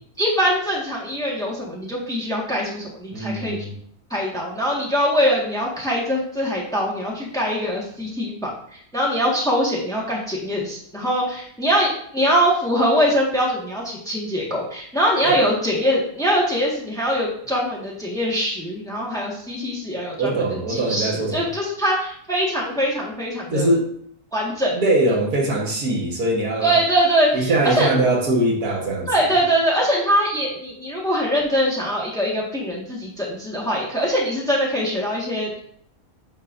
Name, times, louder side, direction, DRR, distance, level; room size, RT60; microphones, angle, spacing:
voice 1, 0.2-3.6 4.1-23.7 24.3-24.7 26.6-27.9 29.1-35.6, equal, ahead, -3 dB, 1.4 m, -23 dB
voice 2, 3.1-3.7 15.2-15.4 20.2-21.4 23.5-23.9 24.7-26.8 27.3-29.1, right 2 dB, 75° right, -1 dB, 1.9 m, -21 dB
8.6 x 5.4 x 2.6 m, 0.64 s
omnidirectional pair, 1.6 m